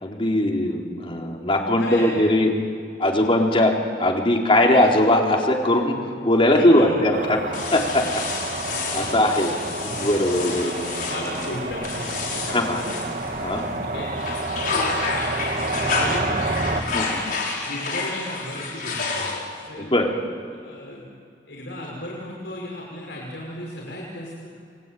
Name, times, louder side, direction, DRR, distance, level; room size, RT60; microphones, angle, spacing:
voice 1, 0.0-2.5 3.0-3.7 4.0-6.0 6.2-7.4 7.7-8.0 8.9-9.5 9.8-10.9 12.4-12.8 13.4-13.6 16.9-17.2 19.8-20.1, left 1 dB, 30° left, 0 dB, 4.0 m, -20 dB
voice 2, 1.8-2.1 3.2-3.3 6.6-6.8 8.6-8.8 9.3-10.3 10.6-10.7 11.0-12.9 13.5-14.1 14.5-14.7 15.8-17.1 17.6-19.9 20.6-21.1 21.5-24.5, left 1 dB, 75° left, -3 dB, 6.1 m, -35 dB
sound 1, 7.1-16.8, right 2 dB, 50° right, 2.5 m, -29 dB
sound 2, 7.5-13.7 14.1-19.7, left 4 dB, 50° left, 5.6 m, -30 dB
29.0 x 22.0 x 9.4 m, 2.3 s
head